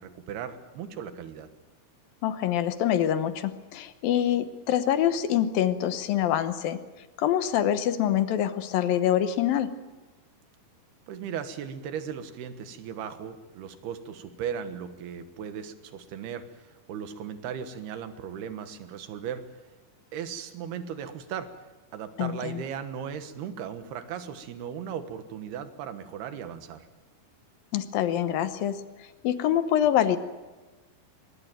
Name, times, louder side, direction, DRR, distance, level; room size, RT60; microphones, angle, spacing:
voice 1, 0.0-1.5 11.1-19.4 20.1-21.5 21.9-26.9, right 8 dB, 90° right, 9 dB, 3.5 m, -37 dB
voice 2, 2.2-6.8 7.2-9.7 22.2-22.6 27.7-28.8 29.2-30.2, left 10 dB, 75° left, 11 dB, 2.7 m, -25 dB
23.5 x 21.0 x 9.2 m, 1.2 s
omnidirectional pair, 4.4 m